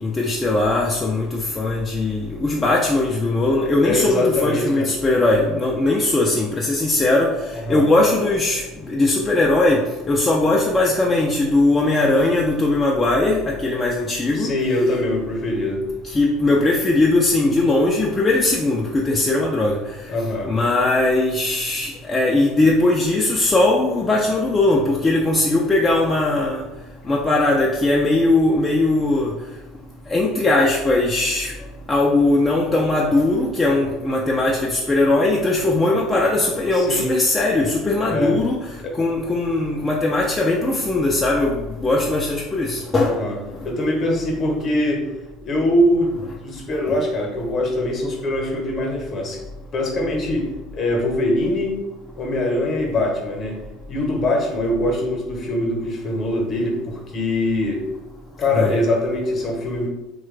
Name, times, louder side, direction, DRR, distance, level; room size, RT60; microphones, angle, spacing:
voice 1, 0.0-7.3 7.7-8.6 8.9-14.5 16.1-19.8 20.5-26.6 27.1-29.3 30.1-31.5 31.9-38.6 39.0-41.6 41.8-43.1 58.5-58.7, left 2 dB, 20° left, -2 dB, 0.4 m, -19 dB
voice 2, 3.8-4.9 7.7-7.9 14.3-15.8 20.1-20.5 36.8-37.2 38.0-38.4 38.8-38.9 43.0-43.4 43.6-45.0 45.4-46.2 46.4-49.4 49.7-50.5 50.7-51.8 52.1-53.6 53.9-57.8 58.4-59.9, left 1 dB, 40° left, 1 dB, 0.9 m, -22 dB
3.1 x 2.2 x 3.1 m, 1.1 s
hypercardioid pair, 70°, 0 cm